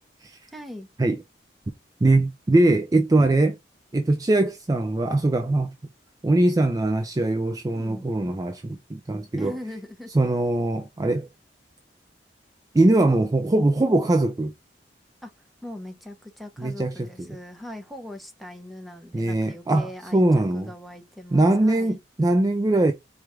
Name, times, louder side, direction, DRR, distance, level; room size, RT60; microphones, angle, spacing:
voice 1, 0.5-0.9 7.7-8.1 9.4-10.1 15.2-15.3 15.6-20.2 20.5-22.0, left 1 dB, ahead, 0.8 m, -40 dB
voice 2, 2.0-3.6 3.9-5.7 6.2-9.5 10.1-11.3 12.7-14.5 16.6-17.3 19.1-20.7 21.3-22.9, right 2 dB, 20° right, 0.4 m, -21 dB
4.6 x 2.4 x 3.2 m
head